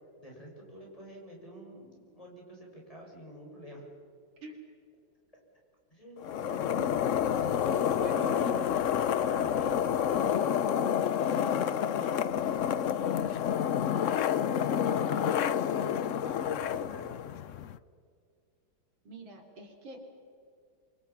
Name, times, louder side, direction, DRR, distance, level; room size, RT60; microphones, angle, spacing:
voice 1, 0.2-3.9 5.9-6.8 7.3-7.7 8.1-8.4 9.1-12.3 12.6-13.2 14.0-14.5 14.9-17.1, equal, 15° left, -2 dB, 6.8 m, -47 dB
sound 1, 6.2-17.8, left 9 dB, 65° left, 0.7 m, -29 dB
voice 2, 6.5-6.9 8.0-8.6 19.1-20.1, right 3 dB, 85° right, 3 dB, 4.0 m, -45 dB
28.0 x 25.5 x 5.9 m, 2.3 s
omnidirectional pair, 2.1 m